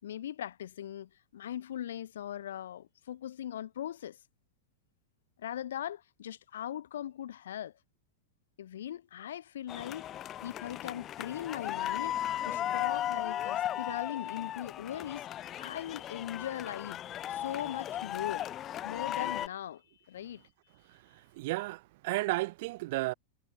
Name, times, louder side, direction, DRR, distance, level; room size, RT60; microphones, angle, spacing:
voice 1, 0.0-4.2 5.4-7.7 8.6-10.1 10.4-12.2 12.4-15.3 15.6-17.0 17.3-18.5 18.8-20.4, left 11 dB, 60° left, 5.8 m, -40 dB
sound 1, 9.7-19.5, left 12 dB, 30° left, 2.5 m, -36 dB
voice 2, 21.3-23.1, right 21 dB, 50° right, 2.3 m, -33 dB
figure-of-eight pair, 90°, 0 cm